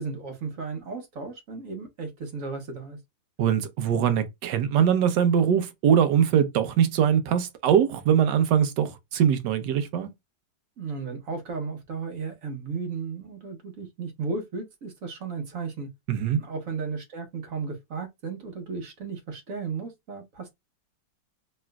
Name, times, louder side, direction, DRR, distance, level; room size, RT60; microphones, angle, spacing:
voice 1, 0.0-3.0 10.8-15.9 16.3-20.5, right 4 dB, 55° right, 1.2 m, -34 dB
voice 2, 3.4-10.1 16.1-16.4, right 8 dB, 75° right, 1.3 m, -22 dB
3.2 x 2.9 x 2.2 m
omnidirectional pair, 1.9 m